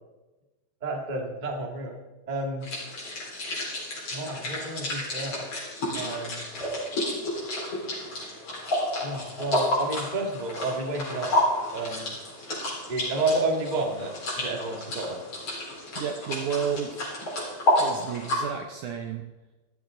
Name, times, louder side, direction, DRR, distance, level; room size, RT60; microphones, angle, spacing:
voice 1, 0.8-1.9 2.3-2.7 4.1-5.5 5.9-6.4 9.0-11.3 11.7-12.1 12.5-12.6 12.9-15.2, right 2 dB, 40° right, 0 dB, 0.6 m, -31 dB
sound 1, 2.6-18.4, left 1 dB, 40° left, 4.9 m, -30 dB
voice 2, 16.0-17.0 17.8-19.2, right 7 dB, 75° right, 4 dB, 1.8 m, -31 dB
15.0 x 13.5 x 3.8 m, 1.1 s
omnidirectional pair, 4.5 m